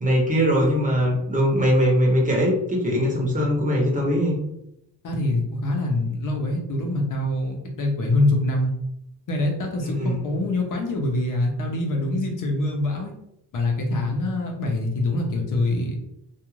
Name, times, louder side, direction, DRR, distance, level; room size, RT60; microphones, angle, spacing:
voice 1, 0.0-4.4 9.8-10.2, equal, 20° right, -3 dB, 0.8 m, -21 dB
voice 2, 5.0-8.7 9.3-13.1 13.5-16.0, left 2 dB, 50° left, 1 dB, 0.7 m, -24 dB
2.4 x 2.4 x 3.0 m, 0.82 s
cardioid pair, 140°, 40 cm